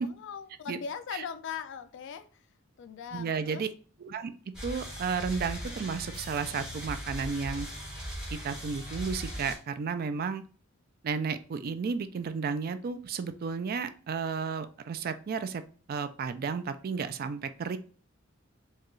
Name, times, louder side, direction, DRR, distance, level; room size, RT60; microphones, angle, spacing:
voice 1, 0.0-2.5 2.8-3.6, left 7 dB, 60° left, 0.3 m, -40 dB
voice 2, 3.1-3.7 4.0-4.3 4.6-7.7 8.3-10.4 11.0-15.6 15.9-17.8, right 5 dB, 45° right, 0.3 m, -33 dB
sound 1, 4.5-9.6, equal, 5° right, 1.2 m, -39 dB
4.6 x 2.3 x 3.0 m
head